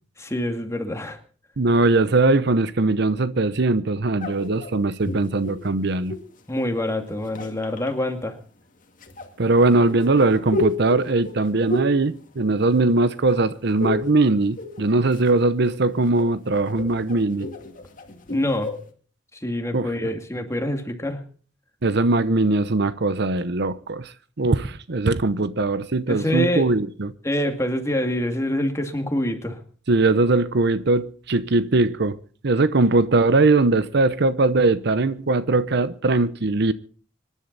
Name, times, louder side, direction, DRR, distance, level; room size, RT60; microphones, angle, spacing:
voice 1, 0.2-1.2 6.5-8.4 18.3-18.7 19.4-21.2 26.1-26.7 27.2-29.6, left 1 dB, 15° left, 2.3 m, -25 dB
voice 2, 1.6-6.2 9.4-17.5 19.7-19.9 21.8-27.1 29.9-32.2 32.4-36.7, right 3 dB, 65° right, 0.8 m, -20 dB
sound 1, 4.2-6.4 7.1-7.9 9.0-13.0 13.3-14.2 14.4-15.3 15.7-18.9, left 3 dB, 45° left, 2.2 m, -32 dB
26.0 x 11.0 x 4.0 m
head